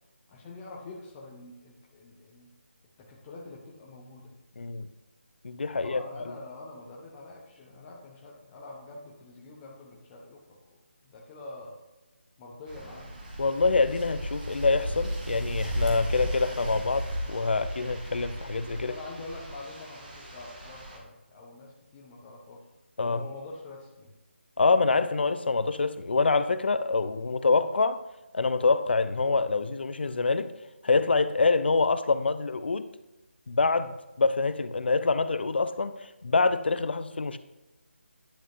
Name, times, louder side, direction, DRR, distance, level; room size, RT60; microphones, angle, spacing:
voice 1, 0.3-2.5 3.0-4.3 5.7-10.8 11.0-11.8 12.4-13.1 18.7-22.6 23.0-24.1, left 2 dB, 15° left, -2 dB, 0.6 m, -45 dB
voice 2, 4.6-4.9 5.4-6.3 13.4-18.9 23.0-23.2 24.6-28.0 28.3-30.5 30.8-32.9 33.5-37.4, left 4 dB, 55° left, 13 dB, 0.5 m, -26 dB
sound 1, 12.7-21.0, equal, 40° right, 1.7 m, -35 dB
10.0 x 6.0 x 2.6 m, 1.1 s
figure-of-eight pair, 155°, 7 cm